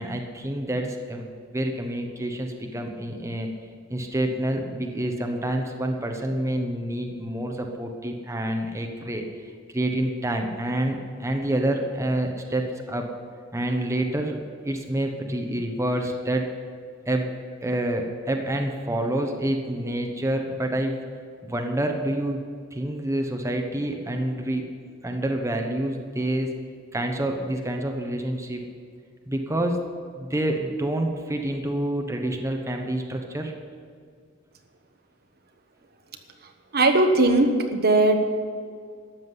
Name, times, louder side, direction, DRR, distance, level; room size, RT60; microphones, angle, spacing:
voice 1, 0.0-3.5 3.9-9.2 9.7-13.1 13.5-14.4 14.6-16.5 17.1-17.3 17.6-21.0 21.4-22.4 22.7-24.7 25.0-26.6 26.9-28.6 29.3-29.8 30.2-33.5, right 1 dB, 15° right, 3 dB, 1.1 m, -27 dB
voice 2, 36.7-38.3, right 2 dB, 50° right, 5 dB, 1.2 m, -19 dB
13.5 x 7.5 x 9.7 m, 2.1 s
head